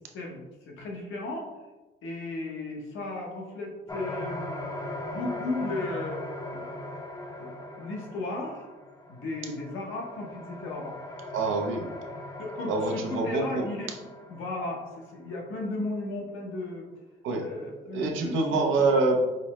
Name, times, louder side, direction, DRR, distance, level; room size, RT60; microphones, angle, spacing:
voice 1, 0.1-1.5 2.0-4.7 5.1-6.2 6.5-7.0 7.4-8.7 9.1-11.0 12.4-13.9 14.3-14.8 15.1-16.9 17.4-18.6, left 2 dB, 85° left, 0 dB, 0.9 m, -35 dB
sound 1, 3.9-15.3, left 1 dB, 20° left, 0.5 m, -39 dB
voice 2, 11.3-11.9 12.7-13.6 17.2-17.4 17.9-19.3, right 3 dB, 85° right, 1 dB, 0.7 m, -25 dB
5.1 x 2.1 x 3.0 m, 1.1 s
cardioid pair, 90°, 20 cm